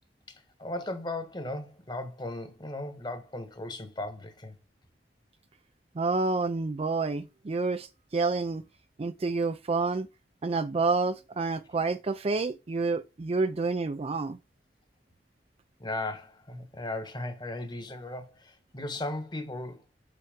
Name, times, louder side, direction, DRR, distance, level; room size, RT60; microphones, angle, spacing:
voice 1, 0.3-4.5 15.8-19.8, left 2 dB, 25° left, 1.2 m, -37 dB
voice 2, 6.0-8.6 9.0-10.1 10.4-14.4, right 3 dB, 35° right, 0.4 m, -29 dB
5.8 x 5.7 x 5.0 m
head